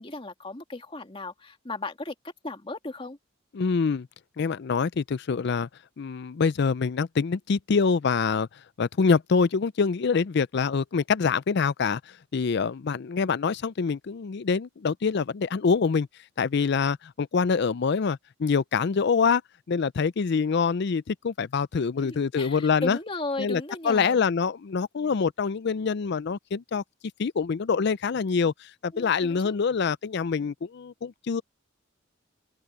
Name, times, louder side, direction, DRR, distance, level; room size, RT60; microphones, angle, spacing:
voice 1, 0.0-2.1 2.4-3.2 22.0-24.2 28.9-29.6, left 2 dB, 25° left, 2.0 m, -36 dB
voice 2, 3.5-4.1 4.4-5.7 6.0-8.5 8.8-12.0 12.3-16.1 16.4-19.4 19.7-23.0 23.4-26.8 27.2-31.4, left 5 dB, 55° left, 0.4 m, -25 dB
open air
head